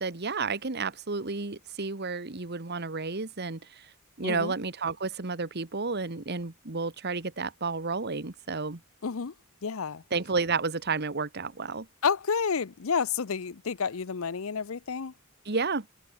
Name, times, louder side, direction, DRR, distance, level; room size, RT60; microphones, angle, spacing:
voice 1, 0.0-3.9 4.2-8.8 10.1-11.9 15.4-15.9, right 4 dB, 50° right, 1.5 m, -31 dB
voice 2, 4.2-4.5 9.0-9.3 9.6-10.0 12.0-15.1, left 6 dB, 75° left, 0.7 m, -30 dB
head